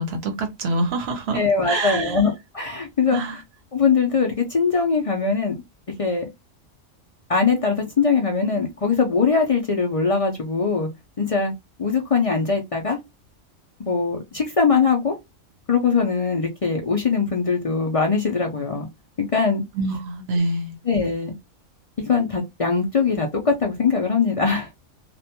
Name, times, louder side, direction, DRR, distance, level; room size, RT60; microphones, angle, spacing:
voice 1, 0.0-2.3 3.1-3.4 19.7-20.8, right 2 dB, 60° right, 0.9 m, -26 dB
voice 2, 1.3-3.2 3.7-5.6 6.0-6.3 7.3-10.9 11.2-11.5 11.8-13.0 13.8-15.2 15.7-18.9 19.2-19.6 20.9-21.3 22.0-24.7, left 5 dB, 50° left, 0.4 m, -21 dB
2.5 x 2.2 x 2.8 m
omnidirectional pair, 1.3 m